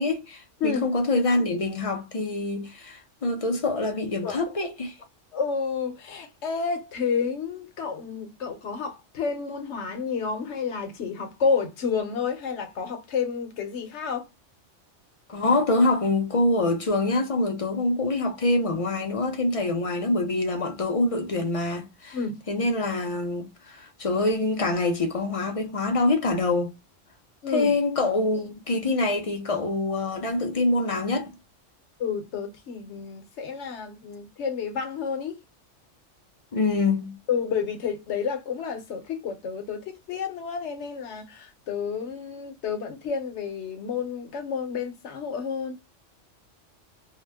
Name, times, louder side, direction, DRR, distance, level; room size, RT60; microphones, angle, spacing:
voice 1, 0.0-4.9 15.3-22.2 22.5-26.7 27.5-31.3 36.5-37.1, left 2 dB, 45° left, 0.5 m, -25 dB
voice 2, 5.3-14.3 22.1-22.4 27.4-27.7 32.0-35.4 37.3-45.8, left 6 dB, 70° left, 1.0 m, -30 dB
2.7 x 2.1 x 3.3 m
omnidirectional pair, 1.3 m